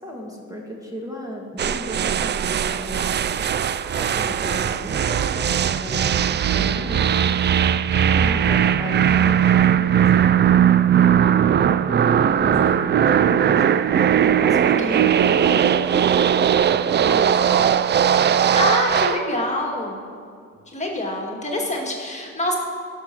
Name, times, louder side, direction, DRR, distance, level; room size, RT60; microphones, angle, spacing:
voice 1, 0.0-3.1 3.9-7.2 8.3-11.5 12.3-17.7, equal, 10° right, -1 dB, 1.9 m, -35 dB
sound 1, 1.6-19.3, right 9 dB, 35° right, 0.4 m, -19 dB
voice 2, 7.9-8.4 14.6-15.1 17.7-17.8 18.5-20.0 20.7-22.6, left 1 dB, 25° left, 0 dB, 2.1 m, -26 dB
13.0 x 7.2 x 6.1 m, 2.2 s
cardioid pair, 90°, 30 cm